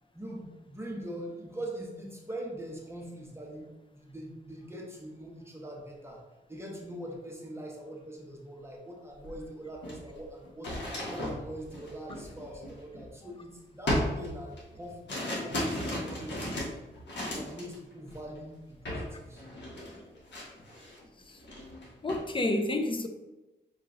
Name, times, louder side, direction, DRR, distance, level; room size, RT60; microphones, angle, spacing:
voice 1, 0.1-6.2 6.5-10.7 11.1-16.8 17.2-19.4 19.9-20.1, right 1 dB, 15° right, -2 dB, 1.2 m, -42 dB
sound 1, 9.2-9.3 9.7-13.3 13.9-17.8 18.1-18.4 18.9-19.1 19.4-21.0 21.4-22.3, left 1 dB, 65° left, 1.4 m, -35 dB
voice 2, 22.0-23.1, left 1 dB, 25° left, 6 dB, 0.6 m, -29 dB
5.9 x 3.0 x 2.6 m, 1.1 s
cardioid pair, 55°, 19 cm